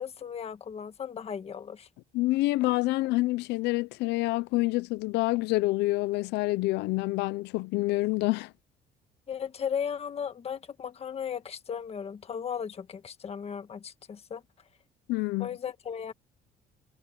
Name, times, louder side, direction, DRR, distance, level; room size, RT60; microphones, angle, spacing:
voice 1, 0.0-1.9 9.3-14.4 15.4-16.1, left 7 dB, 35° left, 1.5 m, -36 dB
voice 2, 2.1-8.5 15.1-15.5, left 20 dB, 90° left, 0.6 m, -27 dB
cardioid pair, 110°, 17 cm